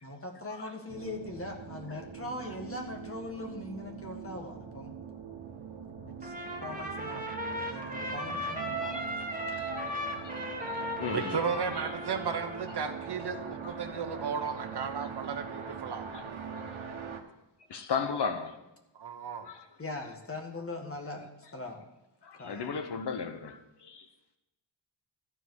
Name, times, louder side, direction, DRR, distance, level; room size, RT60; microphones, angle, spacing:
voice 1, 0.0-5.0 6.0-9.1 9.3-9.7 19.8-21.8 22.4-22.7, left 2 dB, 30° left, 1.8 m, -41 dB
sound 1, 0.9-17.2, right 6 dB, 85° right, 1.4 m, -42 dB
Trumpet, 6.2-12.8, equal, 15° right, 1.7 m, -37 dB
voice 2, 9.5-11.9 15.0-15.1 16.1-16.2 16.5-16.6 17.7-18.6 19.4-19.6 22.2-24.1, left 5 dB, 60° left, 1.0 m, -36 dB
voice 3, 11.1-16.1 18.9-19.5, right 6 dB, 55° right, 1.0 m, -34 dB
13.5 x 5.0 x 8.0 m
wide cardioid pair, 115°, 46 cm